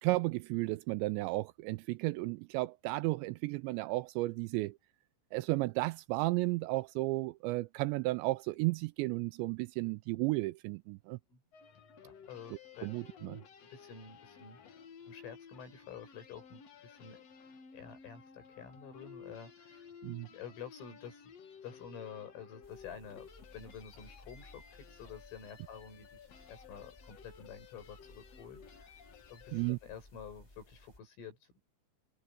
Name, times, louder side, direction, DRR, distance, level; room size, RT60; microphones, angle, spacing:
voice 1, 0.0-4.8 5.3-11.2 12.8-13.4 20.0-20.3 29.5-29.8, right 21 dB, 85° right, 2.5 m, -33 dB
sound 1, 11.5-29.7, left 6 dB, 75° left, 1.5 m, -55 dB
voice 2, 12.0-12.9 13.6-14.6 15.1-17.2 17.7-19.9 20.3-21.3 21.6-23.3 23.5-28.9 29.3-31.6, left 7 dB, 90° left, 10.5 m, -49 dB
sound 2, 22.6-31.0, left 1 dB, 10° left, 2.0 m, -59 dB
omnidirectional pair, 5.6 m